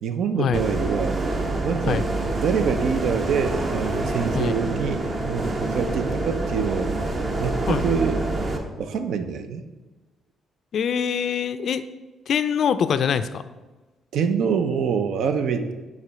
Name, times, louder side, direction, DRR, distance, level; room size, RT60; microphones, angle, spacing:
voice 1, 0.0-1.2 1.6-2.1 2.4-6.9 7.4-8.2 8.8-9.6 14.1-15.7, right 6 dB, 75° right, 8 dB, 0.5 m, -25 dB
sound 1, 0.5-8.6, right 2 dB, 40° right, 0.9 m, -26 dB
voice 2, 10.7-11.8 12.3-13.4, left 7 dB, 60° left, 12 dB, 0.3 m, -24 dB
4.9 x 4.2 x 5.6 m, 1.2 s
cardioid pair, 90°, 0 cm